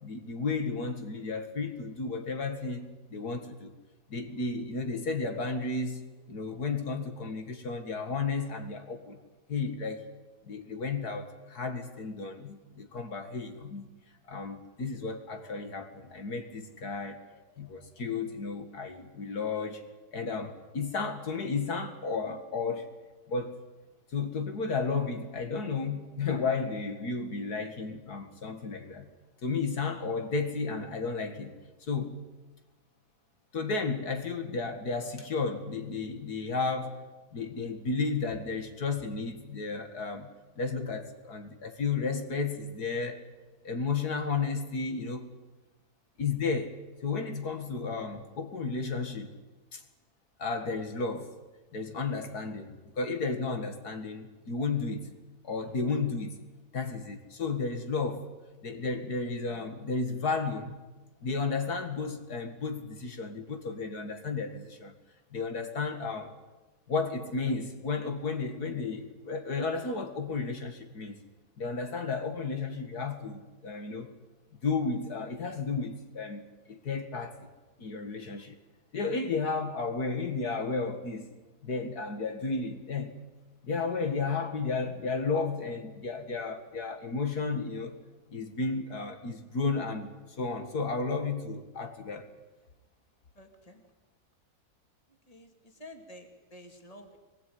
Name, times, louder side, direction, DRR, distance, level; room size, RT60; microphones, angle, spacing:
voice 1, 0.0-3.7 4.1-9.2 9.5-10.0 10.5-13.9 14.3-19.8 20.1-22.9 23.3-23.6 24.1-29.1 29.4-31.5 31.9-32.2 33.5-37.0 37.3-40.3 40.6-43.2 43.6-45.3 46.2-46.7 47.0-49.4 49.7-49.8 50.4-51.3 51.7-55.1 55.4-56.4 56.7-58.3 58.6-60.7 61.2-64.9 65.3-66.3 66.9-71.2 71.6-74.1 74.6-77.5 77.8-78.6 78.9-81.3 81.6-83.1 83.6-88.0 88.3-90.1 90.4-92.3, left 4 dB, 75° left, 7 dB, 2.6 m, -33 dB
voice 2, 93.4-93.8 95.3-97.2, left 1 dB, 25° left, 5 dB, 2.8 m, -50 dB
23.5 x 20.5 x 9.6 m, 1.1 s
omnidirectional pair, 1.7 m